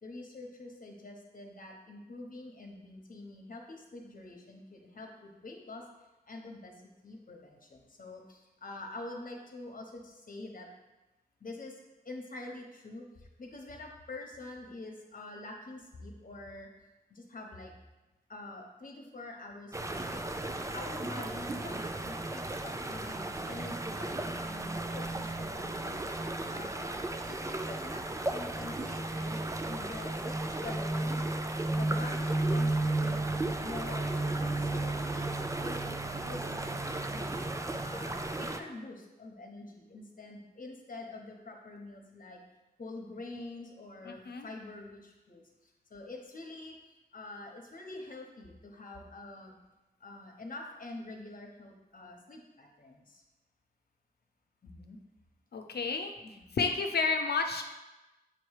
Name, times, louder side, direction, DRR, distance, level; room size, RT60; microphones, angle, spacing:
voice 1, 0.0-5.8 6.3-6.7 7.0-10.7 11.4-11.8 12.0-13.1 13.4-16.7 17.1-17.7 18.3-20.2 20.7-26.0 26.5-27.0 27.3-31.1 31.7-33.3 33.6-35.3 35.6-37.4 37.8-42.4 42.8-45.4 45.9-46.8 47.1-49.5 50.0-53.2 54.6-55.0 56.2-56.5, left 2 dB, 55° left, 1 dB, 1.1 m, -46 dB
sound 1, 19.7-38.6, right 2 dB, 20° right, 0.4 m, -34 dB
voice 2, 44.0-44.5 55.5-56.1 56.6-57.6, left 4 dB, 85° left, 5 dB, 0.6 m, -31 dB
7.9 x 3.1 x 4.8 m, 1.1 s
wide cardioid pair, 100°, 16 cm